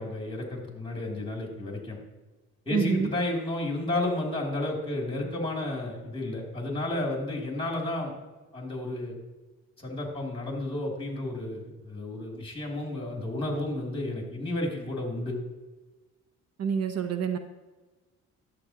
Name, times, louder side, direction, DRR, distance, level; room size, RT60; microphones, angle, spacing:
voice 1, 0.0-2.0 2.6-8.1 8.5-9.2 9.8-15.3, left 1 dB, 20° left, 0 dB, 2.8 m, -32 dB
voice 2, 2.7-3.1 16.6-17.4, right 6 dB, 55° right, 7 dB, 0.8 m, -27 dB
11.5 x 7.9 x 2.9 m, 1.2 s
cardioid pair, 90°, 30 cm